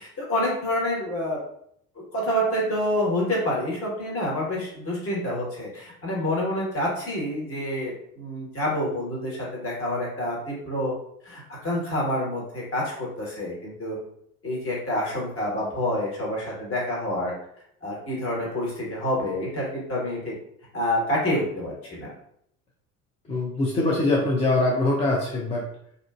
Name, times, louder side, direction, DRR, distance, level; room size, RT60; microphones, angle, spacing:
voice 1, 0.0-1.4 2.1-10.9 11.2-14.0 14.4-17.3 17.8-20.3 20.7-22.1, left 1 dB, 30° left, -4 dB, 1.3 m, -27 dB
voice 2, 23.3-25.7, left 2 dB, 15° left, -3 dB, 0.3 m, -23 dB
2.6 x 2.4 x 2.3 m, 0.70 s
figure-of-eight pair, 60°, 43 cm